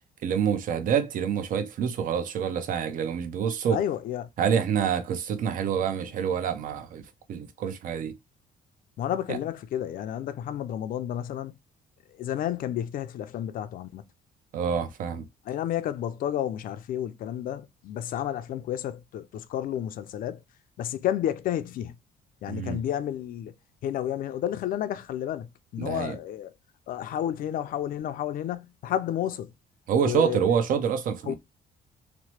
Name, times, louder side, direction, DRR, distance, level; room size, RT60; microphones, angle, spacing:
voice 1, 0.2-3.8 4.4-7.0 7.3-8.2 9.3-9.4 14.5-15.2 22.5-22.8 25.8-26.2 29.9-31.3, right 7 dB, 60° right, 0.6 m, -27 dB
voice 2, 3.7-4.3 9.0-11.5 12.2-14.0 15.5-20.4 20.8-22.0 22.4-23.5 23.8-26.5 26.9-29.5 30.0-30.4 31.3-31.4, left 11 dB, 60° left, 0.4 m, -31 dB
2.9 x 2.0 x 2.9 m
cardioid pair, 115°, 16 cm